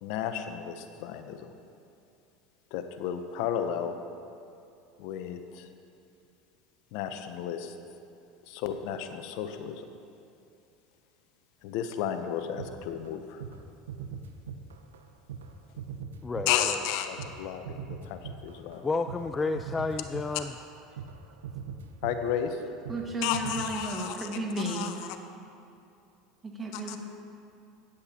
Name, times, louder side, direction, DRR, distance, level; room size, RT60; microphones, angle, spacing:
voice 1, 0.0-1.5 2.7-4.0 5.0-5.7 6.9-7.7 8.5-9.8 11.6-13.4 16.5-18.8 22.0-22.6 23.2-24.3 24.7-25.2 26.7-27.0, left 9 dB, 65° left, 8 dB, 0.7 m, -33 dB
sound 1, 12.6-13.1 13.4-13.6 13.9-15.0 15.3-23.1 23.3-23.8, right 6 dB, 85° right, 0.5 m, -41 dB
voice 2, 16.2-16.8 18.8-20.5, left 3 dB, 20° left, 8 dB, 0.3 m, -31 dB
voice 3, 22.9-24.9 26.4-27.0, right 1 dB, 25° right, 1 dB, 1.7 m, -33 dB
13.0 x 9.8 x 2.9 m, 2.7 s
hypercardioid pair, 90°, 0 cm